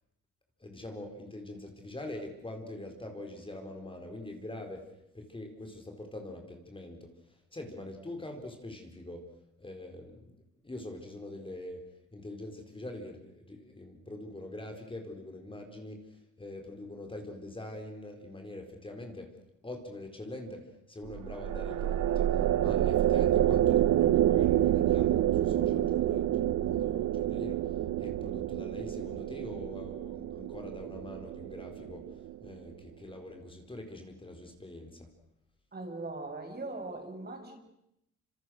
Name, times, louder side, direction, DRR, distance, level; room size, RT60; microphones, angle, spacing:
voice 1, 0.6-9.3 9.6-10.3 10.6-19.3 19.6-35.1, left 1 dB, 15° left, 4 dB, 4.5 m, -44 dB
sound 1, 21.1-32.5, right 12 dB, 70° right, 0.9 m, -28 dB
voice 2, 35.7-37.6, right 2 dB, 35° right, 4 dB, 6.1 m, -40 dB
27.0 x 26.5 x 6.5 m, 0.80 s
cardioid pair, 90°, 30 cm